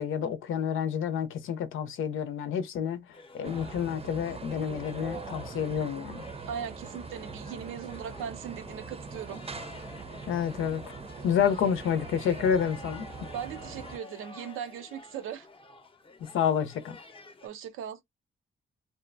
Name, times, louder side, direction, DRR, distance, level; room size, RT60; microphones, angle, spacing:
voice 1, 0.0-6.2 10.3-10.8 11.2-13.3 16.2-17.0, left 8 dB, 80° left, 0.6 m, -29 dB
sound 1, 3.1-17.5, left 3 dB, 25° left, 0.6 m, -50 dB
sound 2, 3.4-14.0, right 4 dB, 30° right, 0.6 m, -42 dB
voice 2, 6.5-9.4 13.3-15.5 17.4-18.0, right 8 dB, 90° right, 0.6 m, -39 dB
2.7 x 2.1 x 2.5 m
cardioid pair, 60°, 20 cm